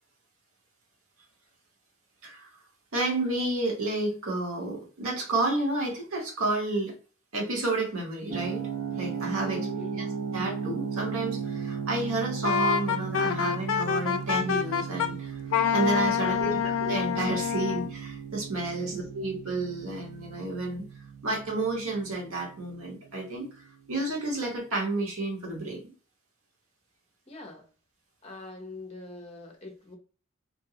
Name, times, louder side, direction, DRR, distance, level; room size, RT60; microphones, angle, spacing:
voice 1, 2.9-6.9 7.3-8.6 9.0-15.4 15.7-20.8 21.2-23.6 23.9-25.9, right 2 dB, 90° right, -1 dB, 1.0 m, -31 dB
sound 1, 8.3-23.1, right 6 dB, 70° right, 0.5 m, -36 dB
voice 2, 9.4-10.1 16.1-16.6 18.7-18.9 27.3-27.7 28.2-30.0, left 2 dB, 30° left, 1 dB, 0.6 m, -43 dB
Wind instrument woodwind instrument, 12.4-15.1 15.5-17.9, left 8 dB, 75° left, 0.3 m, -27 dB
2.6 x 2.4 x 2.7 m, 0.39 s
head